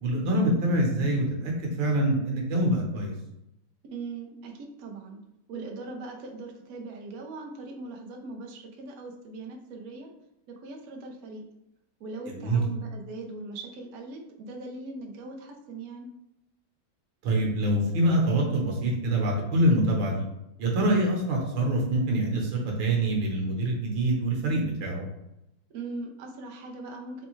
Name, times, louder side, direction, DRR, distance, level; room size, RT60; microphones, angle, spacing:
voice 1, 0.0-3.2 12.3-12.6 17.2-20.3 20.6-25.1, right 1 dB, 70° right, 0 dB, 1.7 m, -25 dB
voice 2, 3.9-5.2 5.5-10.1 10.5-11.4 12.0-16.1 25.7-27.3, right 3 dB, 85° right, 1 dB, 0.8 m, -40 dB
4.3 x 3.3 x 3.1 m, 0.87 s
omnidirectional pair, 2.4 m